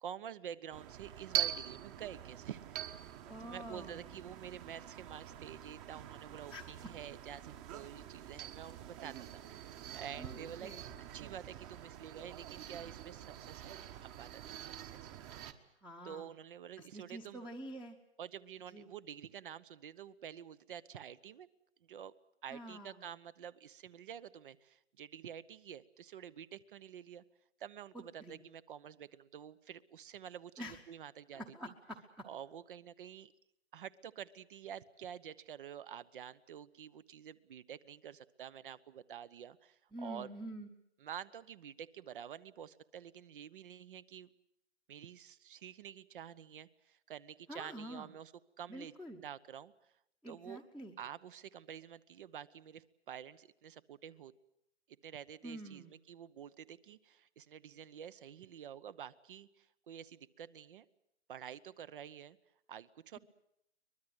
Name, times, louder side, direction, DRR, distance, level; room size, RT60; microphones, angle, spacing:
voice 1, 0.0-3.1 3.4-10.7 11.1-13.7 14.0-15.1 16.0-17.4 18.2-21.5 21.8-22.1 22.4-27.2 27.6-31.7 32.2-33.3 33.7-40.3 41.0-44.3 44.9-48.3 48.6-48.9 49.2-49.7 50.3-50.6 51.0-54.3 55.0-60.9 61.3-62.4 62.7-63.2, right 9 dB, 45° right, 17 dB, 1.0 m, -49 dB
sound 1, 0.7-15.5, right 11 dB, 25° right, 1.4 m, -44 dB
voice 2, 3.3-4.2 6.5-6.7 10.2-10.9 15.8-16.3 16.8-18.0 18.7-18.9 22.5-23.1 28.2-28.4 30.6-30.8 31.3-32.3 39.9-40.7 47.5-48.1 48.7-49.2 50.2-50.9 55.4-55.9, right 1 dB, ahead, 4 dB, 1.0 m, -47 dB
23.5 x 21.0 x 7.9 m, 0.79 s
hypercardioid pair, 140°, 35 cm